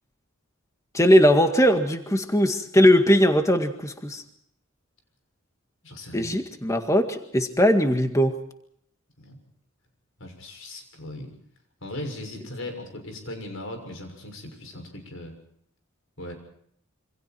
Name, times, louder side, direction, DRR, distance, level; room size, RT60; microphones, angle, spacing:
voice 1, 0.9-4.2 6.1-8.4, equal, 15° left, 6 dB, 1.9 m, -20 dB
voice 2, 5.8-6.3 9.2-9.4 10.2-11.3 11.8-15.3 16.2-16.3, left 1 dB, 70° left, 4 dB, 6.6 m, -38 dB
27.5 x 26.0 x 4.5 m, 0.70 s
head